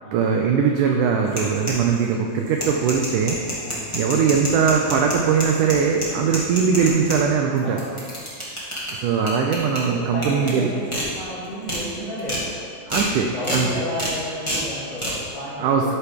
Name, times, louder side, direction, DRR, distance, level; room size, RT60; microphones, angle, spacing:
voice 1, 0.1-3.6 3.9-7.8 8.9-10.7 12.9-13.7 15.6-15.9, right 6 dB, 90° right, 1 dB, 1.8 m, -21 dB
sound 1, 1.3-2.1 2.5-7.2 7.6-8.9 9.3-9.8 10.2-10.5 10.9-11.1 11.4-11.8 12.2-12.4 12.9-13.1 13.4-13.6 14.0-14.1 14.5-14.6 15.0-15.1, equal, 35° left, 0.4 m, -27 dB
voice 2, 3.6-3.9 7.6-8.0 9.9-12.5 13.3-16.0, left 1 dB, 60° left, -8 dB, 3.5 m, -32 dB
12.5 x 5.6 x 3.5 m, 2.3 s
omnidirectional pair, 4.3 m